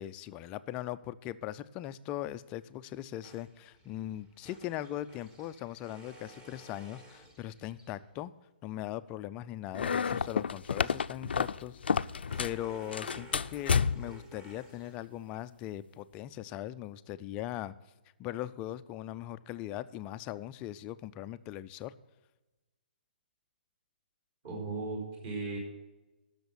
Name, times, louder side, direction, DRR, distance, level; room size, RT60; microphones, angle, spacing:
voice 1, 0.0-8.3 8.6-17.7 18.2-22.0, left 13 dB, 20° left, 13 dB, 0.3 m, -40 dB
sound 1, 3.2-8.2 11.2-15.4, right 1 dB, 15° right, 1.3 m, -55 dB
sound 2, 9.7-12.6 12.9-14.2, left 6 dB, 90° left, 0.4 m, -30 dB
voice 2, 24.4-25.6, right 3 dB, 40° right, -2 dB, 4.5 m, -36 dB
12.5 x 6.4 x 6.9 m, 1.1 s
hypercardioid pair, 160°, 5 cm